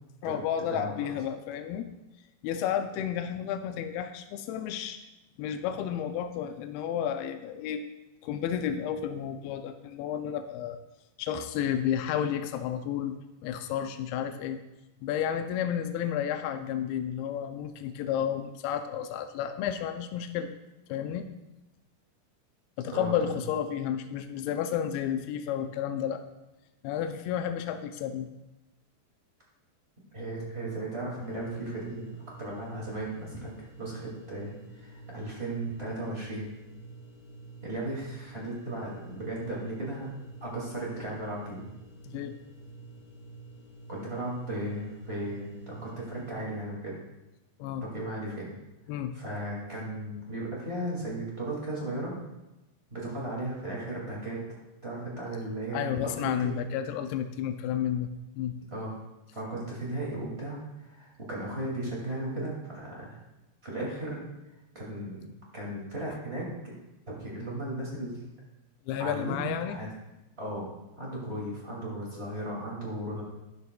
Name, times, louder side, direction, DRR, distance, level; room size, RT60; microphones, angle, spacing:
voice 1, 0.2-1.9 2.4-5.0 5.4-7.9 8.2-10.8 11.2-14.6 15.0-20.5 20.9-21.3 22.8-26.2 26.8-28.3 42.0-42.4 47.6-47.9 48.9-49.1 55.7-58.6 68.9-69.8, left 9 dB, 90° left, 7 dB, 2.2 m, -31 dB
voice 2, 22.9-23.4 30.1-32.0 32.4-36.5 37.6-40.1 40.4-41.6 43.9-47.0 47.9-48.5 49.1-52.1 52.9-54.4 54.8-56.5 58.7-58.9 59.3-63.2 63.6-64.2 64.7-65.2 65.5-66.5 67.1-68.2 69.0-69.9 70.4-70.7 71.0-73.2, right 1 dB, 40° right, -5 dB, 0.8 m, -36 dB
sound 1, 31.2-46.3, right 3 dB, 20° left, 1.2 m, -49 dB
12.0 x 11.0 x 2.3 m, 0.97 s
omnidirectional pair, 5.1 m